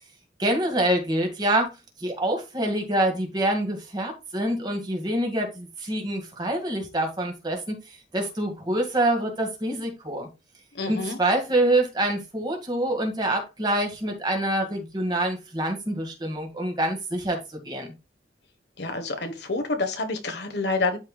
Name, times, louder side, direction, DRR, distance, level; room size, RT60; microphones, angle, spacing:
voice 1, 0.4-1.7 2.0-7.8 8.1-10.3 10.9-17.9, right 1 dB, 25° right, 2.0 m, -26 dB
voice 2, 10.7-11.2 18.8-21.0, left 3 dB, 70° left, 1.4 m, -28 dB
12.0 x 4.6 x 2.4 m
head